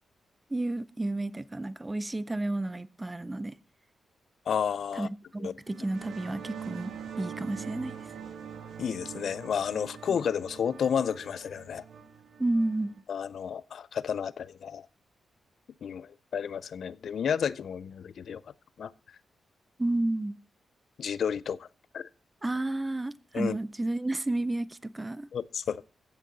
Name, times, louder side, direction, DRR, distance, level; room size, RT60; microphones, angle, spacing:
voice 1, 0.5-3.5 4.9-7.9 12.4-13.0 19.8-20.4 22.4-25.3, right 2 dB, 15° right, 0.5 m, -31 dB
voice 2, 4.5-5.1 5.4-5.5 8.8-11.8 13.1-14.9 15.8-18.4 18.8-18.9 21.0-21.7 21.9-22.1 23.3-23.6 25.3-25.8, left 7 dB, 70° left, 0.4 m, -31 dB
sound 1, 5.6-13.0, right 7 dB, 70° right, 2.1 m, -43 dB
15.0 x 6.6 x 3.8 m
cardioid pair, 105°, 0 cm